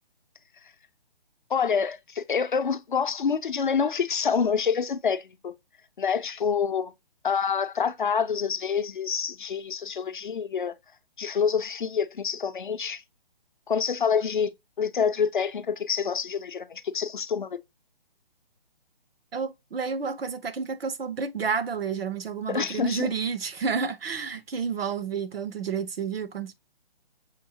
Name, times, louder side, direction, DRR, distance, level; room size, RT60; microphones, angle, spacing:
voice 1, 1.5-5.5 6.0-6.9 7.2-10.7 11.2-13.0 13.7-14.5 14.8-17.6 22.5-23.1, left 6 dB, 55° left, 0.6 m, -27 dB
voice 2, 19.3-26.5, right 5 dB, 70° right, 1.0 m, -30 dB
6.4 x 2.8 x 2.8 m
hypercardioid pair, 175°, 30 cm